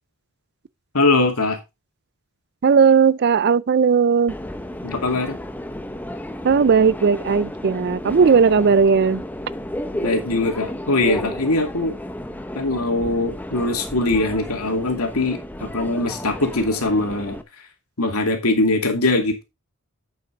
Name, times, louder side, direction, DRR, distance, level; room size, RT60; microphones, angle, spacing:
voice 1, 0.9-1.6 4.8-5.4 10.0-11.9 12.5-17.4 18.0-19.4, left 2 dB, 85° left, 2.5 m, -21 dB
voice 2, 2.6-4.3 6.4-9.2, right 5 dB, 50° right, 0.4 m, -16 dB
Subway metro underground, 4.3-17.4, left 1 dB, 10° left, 0.7 m, -33 dB
8.3 x 8.1 x 3.9 m
head